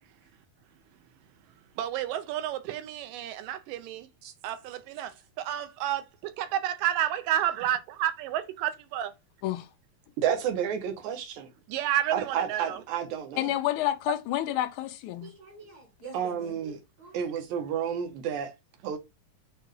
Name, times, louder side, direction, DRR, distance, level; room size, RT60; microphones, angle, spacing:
voice 1, 1.8-4.1 4.4-9.1 11.7-12.8, right 11 dB, 85° right, 2.3 m, -30 dB
voice 2, 10.2-11.5 12.1-13.5 16.1-16.8 17.1-18.5 18.8-19.0, right 8 dB, 70° right, 2.2 m, -30 dB
voice 3, 13.4-15.3, left 13 dB, 80° left, 1.9 m, -29 dB
voice 4, 15.2-17.3, right 3 dB, 45° right, 1.4 m, -47 dB
6.6 x 2.4 x 3.1 m
omnidirectional pair, 3.8 m